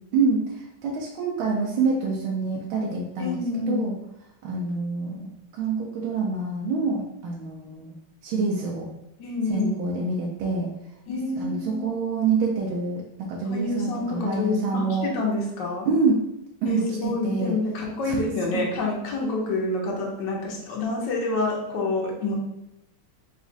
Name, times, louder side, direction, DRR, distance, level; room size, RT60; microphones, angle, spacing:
voice 1, 0.1-3.4 3.7-3.9 4.4-7.9 8.2-8.9 9.5-10.7 11.4-15.1 15.9-16.2 16.6-17.6 18.1-18.2 18.5-18.6, right 4 dB, 75° right, -2 dB, 1.4 m, -26 dB
voice 2, 3.2-3.9 9.2-9.8 11.1-11.8 13.5-15.9 16.6-22.4, left 2 dB, 65° left, -1 dB, 1.5 m, -27 dB
4.1 x 2.4 x 3.9 m, 0.83 s
omnidirectional pair, 2.2 m